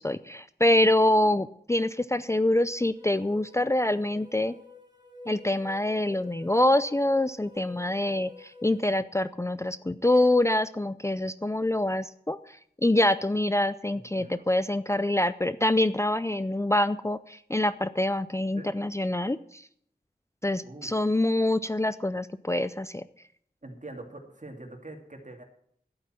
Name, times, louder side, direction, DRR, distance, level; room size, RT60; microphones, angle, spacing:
voice 1, 0.0-4.5 5.3-19.7 20.4-23.0, left 1 dB, 15° left, 14 dB, 0.4 m, -25 dB
sound 1, 2.9-8.9, left 4 dB, 25° right, 3.5 m, -50 dB
voice 2, 13.9-14.4 18.6-18.7 20.6-20.9 23.6-25.4, right 2 dB, 50° right, 4 dB, 2.6 m, -44 dB
11.5 x 8.8 x 7.5 m, 0.65 s
wide cardioid pair, 60°, 16 cm